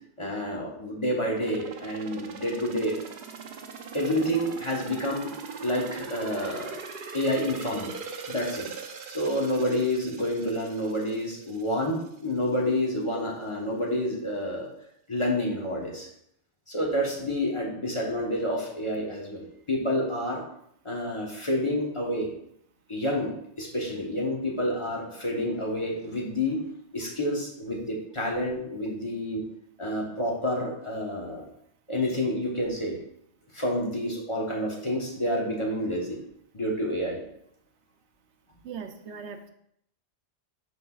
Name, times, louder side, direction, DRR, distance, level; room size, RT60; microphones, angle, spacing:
voice 1, 0.2-3.0 3.9-5.3 5.6-6.8 7.1-7.9 8.3-8.7 9.1-14.7 15.1-16.1 16.7-20.4 20.8-22.3 22.9-26.6 26.9-29.4 29.8-31.5 31.9-33.0 33.5-36.2 36.5-37.2, left 1 dB, 30° left, -2 dB, 1.1 m, -29 dB
sound 1, 1.3-12.1 12.5-12.6, right 5 dB, 55° right, 0.7 m, -41 dB
voice 2, 38.6-39.5, right 6 dB, 80° right, 7 dB, 0.9 m, -39 dB
11.5 x 3.9 x 2.4 m, 0.72 s
omnidirectional pair, 1.2 m